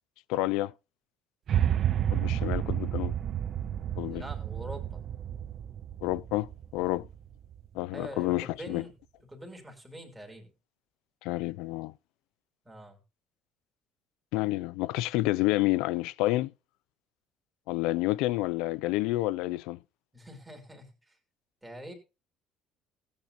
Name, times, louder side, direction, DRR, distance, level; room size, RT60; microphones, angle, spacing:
voice 1, 0.3-0.7 2.1-3.1 4.0-4.2 6.0-7.1 7.7-8.8 11.2-11.9 14.3-16.5 17.7-19.8, left 18 dB, 75° left, 0.5 m, -29 dB
sound 1, 1.5-7.7, right 10 dB, 35° right, 0.5 m, -31 dB
voice 2, 4.1-5.0 7.9-8.9 9.3-10.5 12.6-13.0 20.1-21.1 21.6-21.9, equal, 5° right, 3.2 m, -44 dB
17.5 x 8.9 x 2.6 m
cardioid pair, 180°, 0 cm